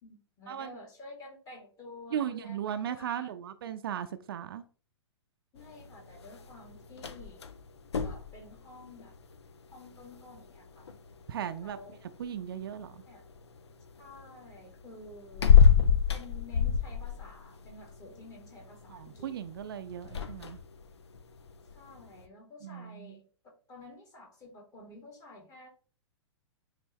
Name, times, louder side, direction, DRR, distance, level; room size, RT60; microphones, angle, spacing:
voice 1, 0.0-3.3 5.5-7.5 8.0-9.1 9.7-10.9 11.6-12.0 13.1-13.2 14.0-15.5 16.1-19.3 21.7-23.2 23.7-25.7, left 2 dB, 25° left, 2.2 m, -50 dB
voice 2, 2.1-4.6 11.3-11.8 12.2-13.0 18.9-20.6 22.6-23.2, right 9 dB, 50° right, 0.6 m, -37 dB
sound 1, 5.6-22.3, left 7 dB, 65° left, 0.7 m, -30 dB
9.3 x 3.3 x 3.1 m
figure-of-eight pair, 105°, 15 cm